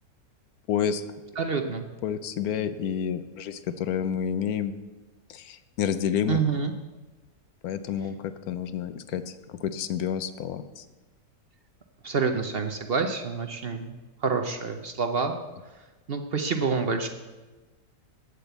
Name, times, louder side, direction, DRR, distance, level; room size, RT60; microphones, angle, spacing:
voice 1, 0.7-1.0 2.0-4.7 5.3-6.4 7.6-10.8, left 8 dB, 75° left, 12 dB, 1.1 m, -29 dB
voice 2, 1.4-1.9 6.3-6.7 12.0-14.0 14.2-15.4 16.1-17.1, right 5 dB, 50° right, 6 dB, 0.8 m, -27 dB
8.9 x 8.0 x 8.0 m, 1.2 s
omnidirectional pair, 1.6 m